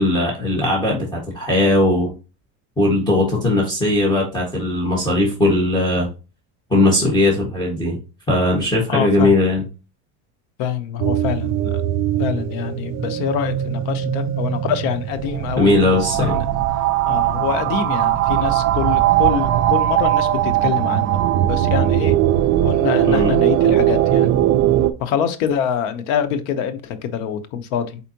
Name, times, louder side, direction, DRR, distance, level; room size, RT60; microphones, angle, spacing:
voice 1, 0.0-2.1 2.8-6.1 6.7-8.0 8.3-9.7 15.6-16.4 23.1-23.3, left 1 dB, 10° left, -2 dB, 1.5 m, -18 dB
voice 2, 8.9-9.3 10.6-11.8 12.2-15.7 16.0-16.4 17.0-21.2 21.5-22.2 22.6-24.3 25.0-28.0, left 8 dB, 80° left, 10 dB, 0.9 m, -25 dB
sound 1, 11.0-24.9, right 12 dB, 40° right, 0.4 m, -19 dB
4.5 x 4.1 x 2.8 m, 0.31 s
supercardioid pair, 130°, 43 cm